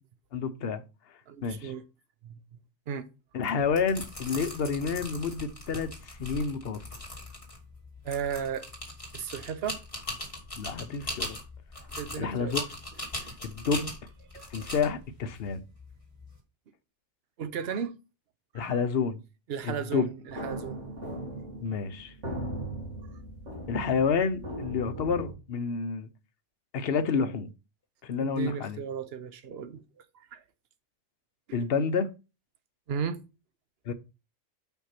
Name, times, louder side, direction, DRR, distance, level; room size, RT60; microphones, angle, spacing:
voice 1, 0.3-0.8 1.4-1.7 3.3-6.8 10.6-11.4 12.2-12.7 13.4-13.9 14.5-15.6 18.5-19.2 19.6-20.1 21.6-22.1 23.7-26.1 26.7-27.5 28.0-28.8 31.5-32.1 33.9-34.0, left 5 dB, 60° left, 1.0 m, -29 dB
voice 2, 1.3-1.8 2.2-2.4 2.9-3.0 8.0-8.7 9.1-9.8 12.0-12.6 13.2-13.3 13.7-13.9 14.3-14.7 17.4-17.9 18.5-18.8 19.5-20.8 28.2-29.8 30.1-30.4 32.9-33.2, right 7 dB, 60° right, 1.0 m, -35 dB
sound 1, 3.6-16.3, left 1 dB, 25° left, 2.7 m, -40 dB
sound 2, 20.3-25.3, right 1 dB, 85° right, 3.0 m, -38 dB
5.8 x 5.5 x 5.9 m
omnidirectional pair, 1.2 m